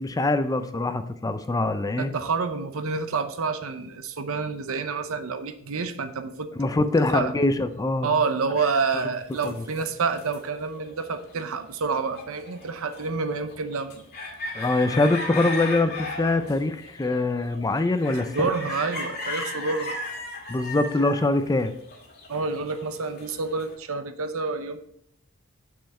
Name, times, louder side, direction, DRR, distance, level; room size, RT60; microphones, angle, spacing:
voice 1, 0.0-2.1 6.6-8.1 9.4-9.6 14.5-18.5 20.5-21.8, left 2 dB, 15° left, 10 dB, 0.4 m, -24 dB
voice 2, 2.0-6.5 7.1-7.3 8.0-14.0 18.2-20.0 22.3-24.8, right 4 dB, 70° right, 10 dB, 0.7 m, -28 dB
sound 1, 8.6-11.7 12.1-23.7, left 2 dB, 50° left, 1.8 m, -36 dB
6.8 x 6.2 x 4.3 m, 0.69 s
head